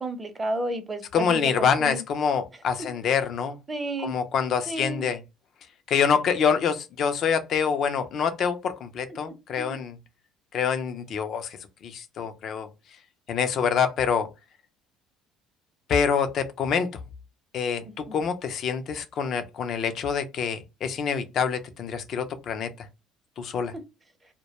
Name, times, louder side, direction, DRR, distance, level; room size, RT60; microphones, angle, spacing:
voice 1, 0.0-2.0 3.7-4.1 4.7-5.0 9.6-9.8 18.1-18.2, right 1 dB, 25° right, 0.6 m, -32 dB
voice 2, 1.1-3.6 4.0-5.2 5.9-10.0 10.5-12.7 13.3-14.3 15.9-16.9 17.5-22.9 23.4-23.7, left 6 dB, 55° left, 0.5 m, -26 dB
2.1 x 2.1 x 2.8 m
supercardioid pair, 85°, 0 cm